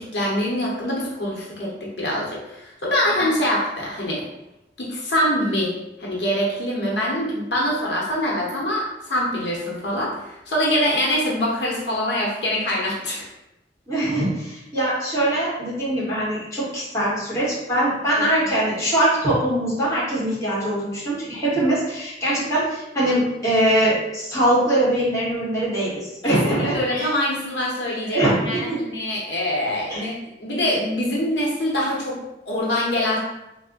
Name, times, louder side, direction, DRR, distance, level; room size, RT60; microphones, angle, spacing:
voice 1, 0.0-4.3 4.8-5.7 6.0-13.2 26.2-30.1 30.4-32.2 32.5-33.2, left 1 dB, 85° left, -4 dB, 0.8 m, -24 dB
voice 2, 13.9-27.1 28.0-28.8 29.9-30.0, right 1 dB, 15° left, -9 dB, 1.4 m, -22 dB
3.3 x 2.0 x 3.7 m, 0.92 s
head